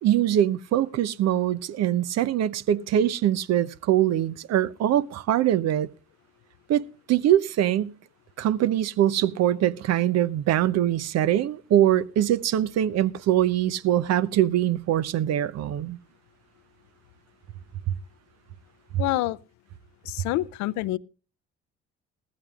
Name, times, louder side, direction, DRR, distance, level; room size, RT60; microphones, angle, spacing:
voice 1, 0.0-5.9 6.7-7.9 8.4-16.0 17.9-18.0, right 11 dB, 60° right, 0.8 m, -23 dB
voice 2, 19.0-19.4 20.0-21.0, left 17 dB, 70° left, 0.5 m, -27 dB
18.0 x 14.5 x 2.4 m
hypercardioid pair, 55°, 29 cm